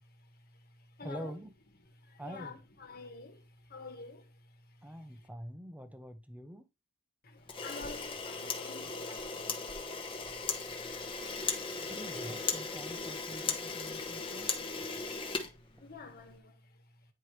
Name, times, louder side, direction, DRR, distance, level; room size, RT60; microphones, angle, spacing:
voice 1, 0.0-1.3 2.0-5.2 7.2-11.1 14.7-14.8 15.8-16.8, left 3 dB, 45° left, 1.6 m, -50 dB
voice 2, 1.0-1.5 2.2-2.6 4.8-6.7 11.8-14.5, equal, 5° right, 0.8 m, -45 dB
Camera, 7.5-16.2, left 4 dB, 25° left, 1.1 m, -37 dB
9.5 x 4.5 x 3.3 m
head